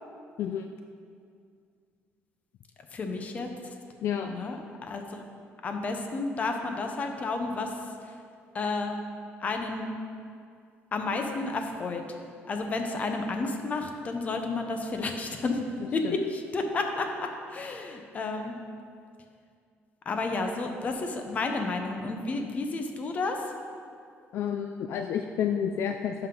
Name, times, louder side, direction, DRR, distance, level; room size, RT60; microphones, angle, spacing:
voice 1, 0.4-0.7 4.0-4.3 16.0-16.2 24.3-26.3, left 8 dB, 60° left, 5 dB, 0.3 m, -30 dB
voice 2, 2.9-3.5 4.3-5.2 5.6-7.7 8.1-8.2 8.5-9.0 9.4-9.9 10.9-12.2 12.5-15.6 15.9-18.6 20.1-23.4, left 3 dB, 30° left, 4 dB, 0.7 m, -31 dB
11.5 x 5.7 x 3.8 m, 2.3 s
cardioid pair, 160°, 5 cm